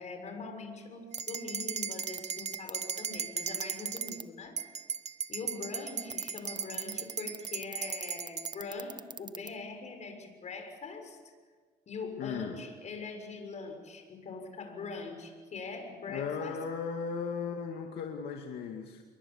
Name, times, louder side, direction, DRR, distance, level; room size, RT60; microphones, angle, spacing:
voice 1, 0.0-4.6 5.3-11.2 11.9-16.6, left 4 dB, 45° left, 5 dB, 6.6 m, -42 dB
sound 1, 1.1-4.2 4.6-8.6, right 7 dB, 40° right, 1.3 m, -37 dB
sound 2, 1.2-1.4 2.0-2.2 2.5-2.7 3.5-4.2 6.1-9.5, right 5 dB, 25° right, 1.1 m, -42 dB
voice 2, 12.2-12.5 16.1-19.0, left 6 dB, 75° left, 3 dB, 2.3 m, -36 dB
28.5 x 23.0 x 7.3 m, 1.5 s
cardioid pair, 110°, 17 cm